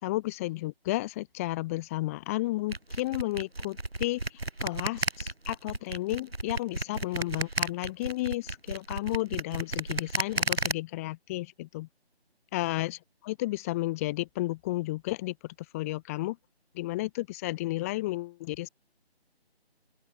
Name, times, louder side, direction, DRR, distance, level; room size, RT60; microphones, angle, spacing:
voice 1, 0.0-11.9 12.5-16.4 16.7-18.7, left 18 dB, 15° left, 4.4 m, -33 dB
sound 1, 2.7-10.7, right 2 dB, 70° right, 7.6 m, -32 dB
open air
figure-of-eight pair, 155°, 32 cm